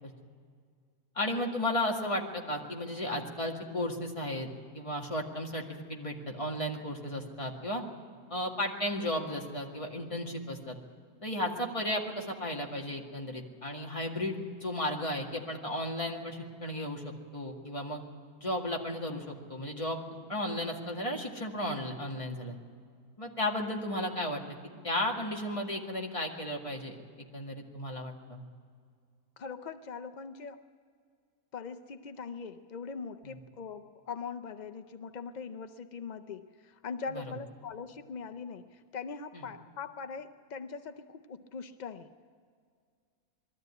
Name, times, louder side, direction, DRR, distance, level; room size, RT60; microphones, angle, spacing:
voice 1, 1.2-4.5 4.7-7.8 8.3-10.8 11.2-18.0 18.4-20.0 20.3-22.6 23.2-24.4 24.8-27.0 27.3-28.4 33.2-33.4 37.1-37.2 39.3-39.4, left 1 dB, 20° left, 0 dB, 2.0 m, -34 dB
voice 2, 29.4-30.6 31.5-42.1, left 5 dB, 65° left, 8 dB, 0.4 m, -41 dB
21.5 x 13.5 x 9.7 m, 2.1 s
omnidirectional pair, 1.6 m